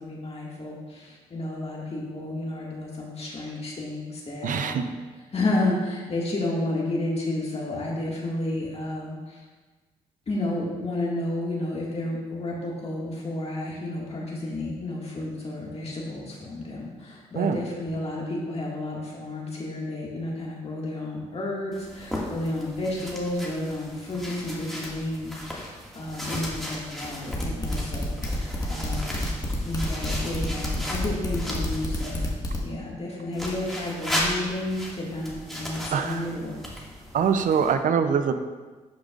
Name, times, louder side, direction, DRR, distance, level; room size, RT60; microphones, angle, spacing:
voice 1, 0.0-4.9 5.3-9.4 10.3-29.3 29.6-32.3 32.6-36.6, left 2 dB, 40° left, -4 dB, 2.0 m, -31 dB
voice 2, 4.4-4.9 17.4-17.6 35.9-36.2 37.1-38.3, right 7 dB, 60° right, 9 dB, 0.6 m, -23 dB
sound 1, 21.7-32.3 33.3-37.7, equal, ahead, 2.0 m, -36 dB
sound 2, 27.3-32.6, left 1 dB, 25° left, 1.8 m, -28 dB
11.5 x 5.1 x 2.5 m, 1.3 s
supercardioid pair, 50°, 15 cm